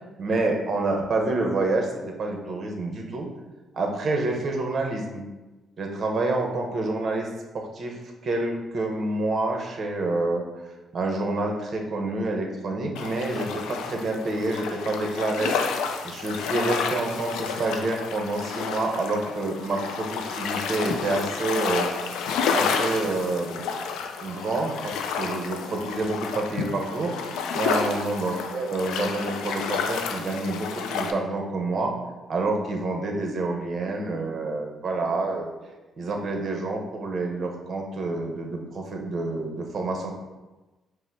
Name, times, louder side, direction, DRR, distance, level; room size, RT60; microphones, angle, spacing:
voice 1, 0.2-3.3 3.7-5.3 5.8-7.3 7.5-8.0 8.2-10.4 10.9-15.6 16.0-21.9 22.5-23.7 24.2-27.1 27.5-31.9 32.3-35.5 36.0-40.1, right 2 dB, 50° right, 2 dB, 0.8 m, -28 dB
sound 1, 13.0-31.1, left 6 dB, 90° left, 0.4 m, -30 dB
5.4 x 2.1 x 4.5 m, 1.1 s
cardioid pair, 90°, 0 cm